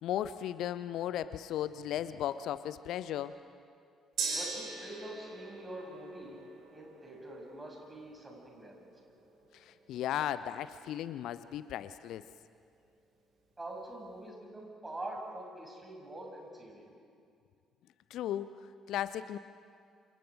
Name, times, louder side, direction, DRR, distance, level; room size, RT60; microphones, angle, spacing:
voice 1, 0.0-3.4 9.5-12.2 18.1-19.4, left 11 dB, 60° left, 15 dB, 0.5 m, -36 dB
Gong, 4.2-11.9 12.3-12.4, right 4 dB, 55° right, 6.0 m, -43 dB
voice 2, 4.3-6.4 6.7-8.9 13.6-16.9, right 1 dB, 20° right, 0 dB, 7.5 m, -45 dB
28.5 x 28.0 x 5.2 m, 2.3 s
figure-of-eight pair, 45°, 0 cm